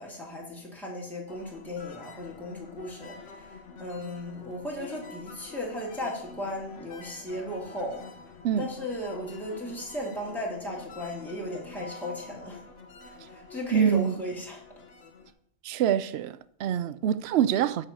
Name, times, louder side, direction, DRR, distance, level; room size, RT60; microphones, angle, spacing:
voice 1, 0.0-3.5 3.8-8.0 8.6-12.6 13.0-14.6, left 1 dB, ahead, 2.2 m, -36 dB
sound 1, 1.3-15.3, left 4 dB, 85° left, 1.4 m, -47 dB
voice 2, 13.7-14.2 15.6-17.8, right 9 dB, 70° right, 0.8 m, -25 dB
8.0 x 5.8 x 6.9 m
omnidirectional pair, 1.2 m